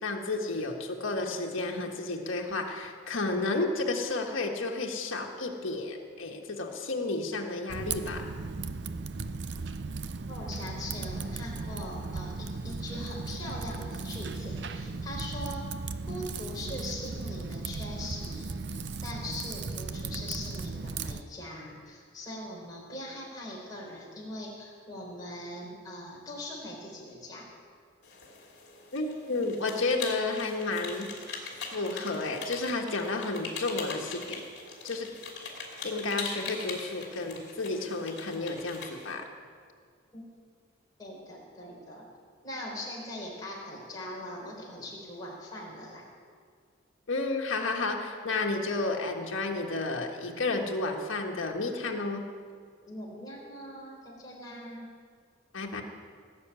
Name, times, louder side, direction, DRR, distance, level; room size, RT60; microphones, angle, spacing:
voice 1, 0.0-8.3 28.9-31.1 31.6-34.4 34.8-35.1 35.8-39.3 47.1-52.2 55.5-55.8, left 3 dB, 90° left, 1 dB, 1.5 m, -31 dB
Typing, 7.7-21.2, right 4 dB, 60° right, 0.6 m, -36 dB
voice 2, 10.3-15.7 16.1-27.5 40.1-40.2 41.0-42.1 42.4-46.0 52.9-54.9, left 1 dB, 20° left, -4 dB, 3.7 m, -41 dB
sound 1, 28.0-39.1, left 4 dB, 55° left, 2.8 m, -41 dB
18.0 x 6.9 x 9.0 m, 2.1 s
head